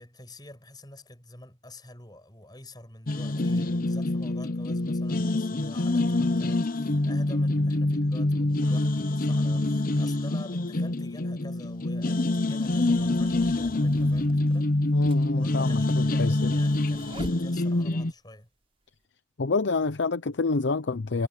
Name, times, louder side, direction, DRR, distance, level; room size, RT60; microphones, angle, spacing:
voice 1, 0.0-15.1 15.4-18.5, left 1 dB, 25° left, 7.8 m, -47 dB
sound 1, 3.1-18.1, left 2 dB, 50° left, 0.8 m, -26 dB
sound 2, 10.6-10.7 11.6-18.1, right 1 dB, 30° right, 7.2 m, -47 dB
voice 2, 14.9-16.5 19.4-21.3, left 3 dB, 85° left, 0.7 m, -28 dB
head